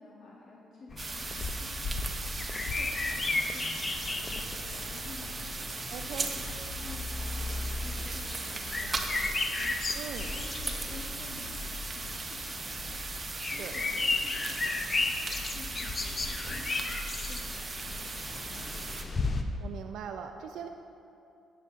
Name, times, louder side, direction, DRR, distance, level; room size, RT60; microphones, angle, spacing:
voice 1, 0.0-2.1 2.8-19.3, left 3 dB, 55° left, -3 dB, 1.0 m, -51 dB
sound 1, 0.9-19.4, left 3 dB, 35° left, 0.5 m, -35 dB
sound 2, 1.0-19.0, right 3 dB, 30° right, 0.7 m, -38 dB
voice 2, 5.9-6.3 9.9-10.3 13.4-13.8 19.6-20.7, right 7 dB, 75° right, 5 dB, 0.3 m, -40 dB
10.5 x 7.4 x 2.5 m, 2.7 s
cardioid pair, 90°, 0 cm